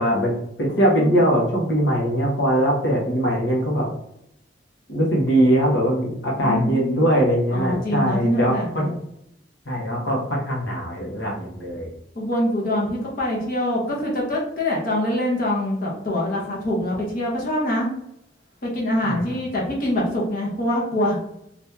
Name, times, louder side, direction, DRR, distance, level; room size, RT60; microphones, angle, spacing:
voice 1, 0.0-3.9 4.9-8.9 9.6-11.9 19.0-19.4, equal, 70° left, -2 dB, 1.1 m, -21 dB
voice 2, 0.8-1.1 6.4-7.0 7.5-8.9 12.1-17.9 18.6-21.2, left 1 dB, 50° left, -4 dB, 1.0 m, -24 dB
2.8 x 2.6 x 3.5 m, 0.77 s
head